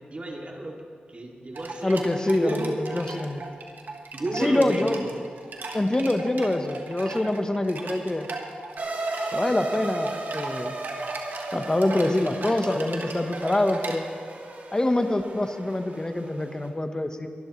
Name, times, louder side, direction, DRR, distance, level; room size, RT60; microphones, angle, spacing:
voice 1, 0.1-0.8 1.1-2.0 2.4-2.8 4.1-5.1, right 1 dB, 40° right, -1 dB, 2.5 m, -31 dB
sound 1, 1.5-14.0, right 3 dB, 75° right, 1.5 m, -39 dB
voice 2, 1.8-3.4 4.3-5.0 5.7-8.3 9.3-10.8 11.5-14.0 14.7-17.3, left 1 dB, 25° left, 7 dB, 1.0 m, -25 dB
sound 2, 8.8-16.7, right 2 dB, 60° right, 1.9 m, -35 dB
23.0 x 11.5 x 3.2 m, 2.3 s
cardioid pair, 60°, 3 cm